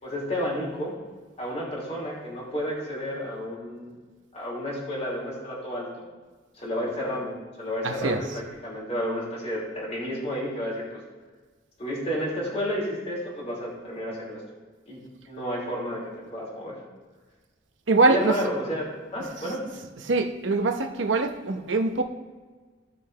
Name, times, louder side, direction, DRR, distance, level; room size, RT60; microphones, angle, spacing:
voice 1, 0.0-0.9 1.4-3.9 4.3-6.0 6.6-11.0 11.8-14.4 14.9-16.7 18.1-19.7, equal, 35° left, -5 dB, 2.9 m, -31 dB
voice 2, 7.8-8.4 17.9-18.3 19.4-19.6 20.0-22.0, right 3 dB, 80° right, 5 dB, 0.9 m, -24 dB
16.0 x 5.6 x 3.3 m, 1.4 s
head